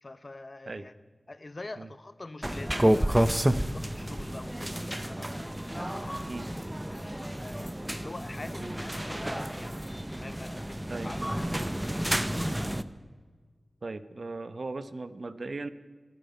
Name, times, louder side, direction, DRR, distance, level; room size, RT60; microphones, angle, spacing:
voice 1, 0.0-0.9 1.3-6.6 6.9-9.8 10.2-12.3, left 2 dB, 40° left, 0.6 m, -45 dB
sound 1, 2.4-12.8, right 1 dB, 10° right, 0.7 m, -30 dB
voice 2, 13.8-15.7, right 3 dB, 60° right, 0.8 m, -38 dB
26.5 x 9.3 x 5.5 m
wide cardioid pair, 90°, 0 cm